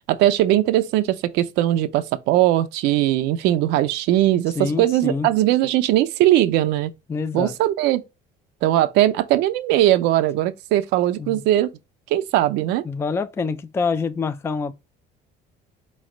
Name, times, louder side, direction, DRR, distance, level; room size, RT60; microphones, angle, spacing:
voice 1, 0.1-6.9 7.3-8.0 8.6-11.7 12.1-12.8, right 14 dB, 80° right, 0.6 m, -19 dB
voice 2, 4.6-5.3 7.1-7.6 11.2-11.4 12.9-14.7, left 4 dB, 15° left, 0.3 m, -26 dB
4.3 x 3.1 x 3.7 m
cardioid pair, 120°, 17 cm